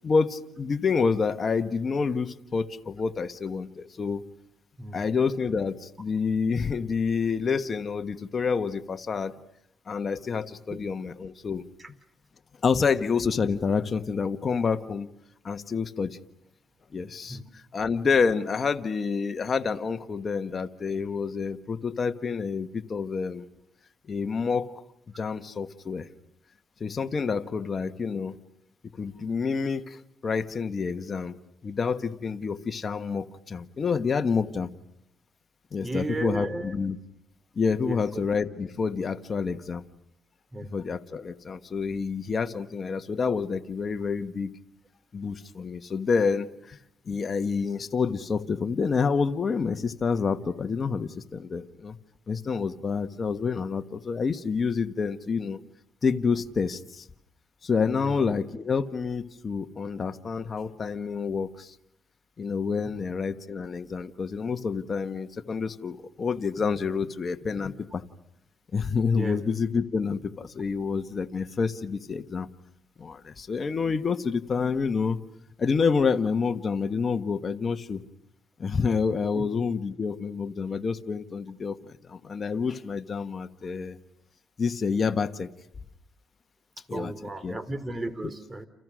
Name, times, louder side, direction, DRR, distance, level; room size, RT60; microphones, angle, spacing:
voice 1, 0.0-4.2 4.9-9.4 9.9-11.6 12.6-15.1 15.4-16.2 16.9-23.5 24.1-24.8 25.2-26.1 26.8-28.4 29.0-31.4 31.6-34.7 35.7-37.0 37.5-39.8 40.7-44.5 45.1-46.8 47.1-52.0 52.3-55.6 56.0-57.0 57.6-61.7 62.4-68.0 68.7-72.5 73.0-75.2 75.6-78.0 78.6-81.8 82.1-84.0 84.6-85.5 86.9-87.1 87.4-87.6 88.2-88.3, left 5 dB, 40° left, 8 dB, 1.4 m, -28 dB
voice 2, 35.8-36.7 37.8-38.0 40.5-40.7 58.0-58.2 62.8-63.0 69.1-69.4 79.3-79.4 86.9-88.7, right 2 dB, 25° right, 13 dB, 3.1 m, -34 dB
29.5 x 28.5 x 6.4 m, 0.76 s
cardioid pair, 90°, 0 cm